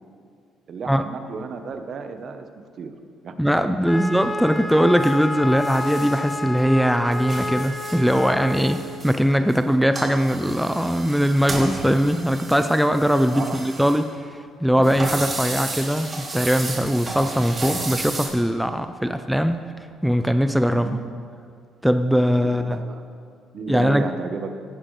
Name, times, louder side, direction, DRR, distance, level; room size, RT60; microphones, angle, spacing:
voice 1, 0.7-2.5 2.8-2.9 3.2-3.6 13.3-13.6 19.0-19.2 20.7-21.1 22.4-23.0 23.5-24.5, right 4 dB, 55° right, 8 dB, 0.9 m, -33 dB
voice 2, 3.4-14.3 14.6-19.6 20.0-21.0 21.8-22.8 23.7-24.1, equal, ahead, 8 dB, 0.4 m, -20 dB
Wind instrument woodwind instrument, 3.8-8.6, left 2 dB, 15° left, 0.9 m, -30 dB
sound 1, 5.0-5.1 5.6-6.6 6.9-9.6 9.9-14.0 14.8-18.3, right 2 dB, 35° right, 2.7 m, -33 dB
16.0 x 10.0 x 3.2 m, 2.3 s
cardioid pair, 95°, 0 cm